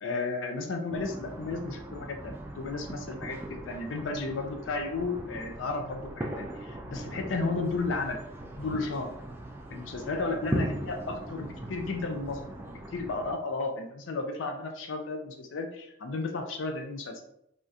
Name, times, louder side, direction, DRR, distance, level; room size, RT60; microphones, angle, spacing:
voice 1, 0.0-3.4 3.7-8.2 8.6-9.1 9.7-12.4 12.7-17.2, left 3 dB, 85° left, 4 dB, 0.5 m, -33 dB
sound 1, 0.9-13.4, right 1 dB, 10° right, 0.3 m, -39 dB
3.4 x 2.4 x 2.7 m, 0.74 s
head